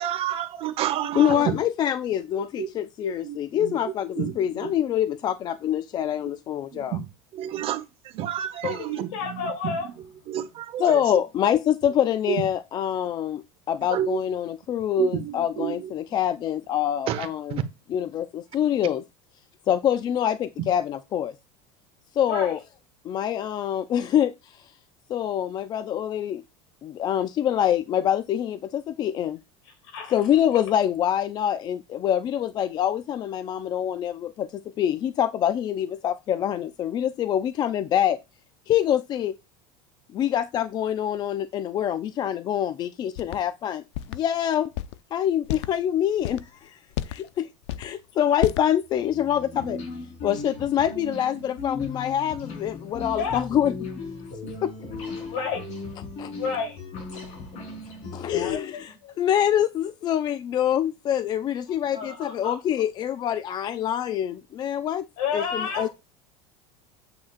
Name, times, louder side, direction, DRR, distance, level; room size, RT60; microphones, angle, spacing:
voice 1, 0.0-1.5 2.6-2.7 3.0-4.7 6.7-11.0 12.3-12.4 13.0-13.1 13.9-14.2 15.0-15.9 17.1-17.6, right 11 dB, 40° right, 1.0 m, -30 dB
voice 2, 1.1-7.0 10.8-17.6 17.9-19.0 19.7-21.3 22.1-22.6 23.0-24.7 25.1-26.4 26.8-29.4 30.1-38.2 38.7-39.4 40.1-43.8 44.1-44.7 45.1-46.8 47.0-47.5 47.8-49.8 50.2-53.7 54.6-54.7 56.2-56.3 58.1-65.1 65.3-65.9, left 10 dB, 30° left, 0.3 m, -25 dB
voice 3, 8.6-9.9 22.3-22.6 29.8-30.1 53.2-53.4 55.3-55.7 56.3-56.8 58.3-59.1 61.9-62.6 65.2-65.9, left 6 dB, 70° left, 2.9 m, -31 dB
sound 1, 43.2-43.4 44.0-44.2 44.8-45.0 45.4-45.7 46.2-46.5 46.9-47.3 47.6-47.9 48.4-48.7, left 13 dB, 90° left, 0.5 m, -30 dB
sound 2, 48.9-58.5, left 3 dB, 50° left, 3.7 m, -37 dB
8.6 x 7.4 x 2.4 m
cardioid pair, 150°, 14 cm